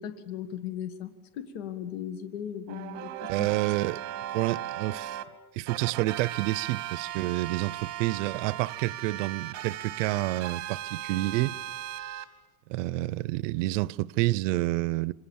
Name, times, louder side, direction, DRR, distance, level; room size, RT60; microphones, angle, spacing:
voice 1, 0.0-3.5, left 9 dB, 85° left, 1.9 m, -37 dB
sound 1, 2.7-5.2 5.7-12.2, right 13 dB, 45° right, 3.0 m, -37 dB
voice 2, 3.3-4.0 4.3-5.2 5.6-11.6 12.7-15.1, right 18 dB, 90° right, 0.8 m, -29 dB
27.5 x 24.5 x 7.3 m
cardioid pair, 150°, 37 cm